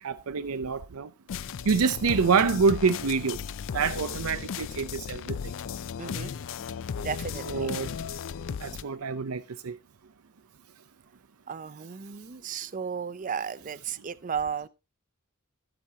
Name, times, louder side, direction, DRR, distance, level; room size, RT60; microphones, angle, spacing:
voice 1, 0.0-1.1 1.6-3.4 3.7-5.4 7.5-7.9 8.6-9.8, right 5 dB, 80° right, 0.6 m, -26 dB
sound 1, 1.3-8.8, left 7 dB, 65° left, 0.4 m, -35 dB
voice 2, 6.0-6.3 7.0-7.7 8.5-8.6 11.5-14.7, right 6 dB, 40° right, 0.5 m, -34 dB
16.5 x 7.0 x 2.8 m
head